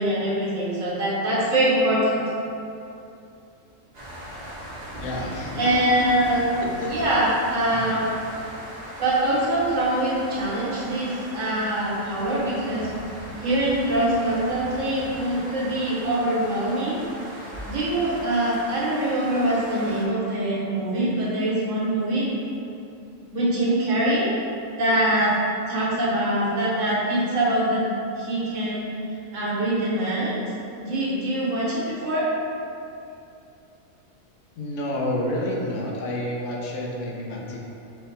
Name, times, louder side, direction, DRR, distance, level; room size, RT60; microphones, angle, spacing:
voice 1, 0.0-2.2 5.6-6.5 6.9-8.1 9.0-12.9 13.4-17.0 17.6-22.3 23.3-24.3 24.8-25.3 25.7-27.8 28.2-28.9 29.3-30.4 30.8-32.3, right 1 dB, 70° right, -7 dB, 1.3 m, -23 dB
sound 1, 3.9-20.1, equal, 40° right, 0.6 m, -38 dB
voice 2, 5.0-5.8 6.6-6.9 7.7-7.8 34.6-37.6, left 1 dB, 75° left, -2 dB, 1.0 m, -29 dB
4.2 x 2.7 x 3.9 m, 2.7 s
omnidirectional pair, 1.4 m